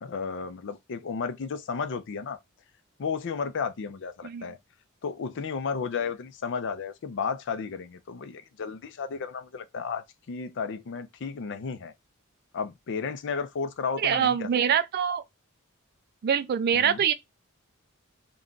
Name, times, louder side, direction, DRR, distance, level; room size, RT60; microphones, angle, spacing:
voice 1, 0.0-2.4 3.0-4.6 5.0-11.9 12.5-14.5 16.7-17.0, left 5 dB, 60° left, 0.4 m, -33 dB
voice 2, 14.0-15.2 16.2-17.1, right 8 dB, 45° right, 0.3 m, -24 dB
2.4 x 2.2 x 3.7 m
head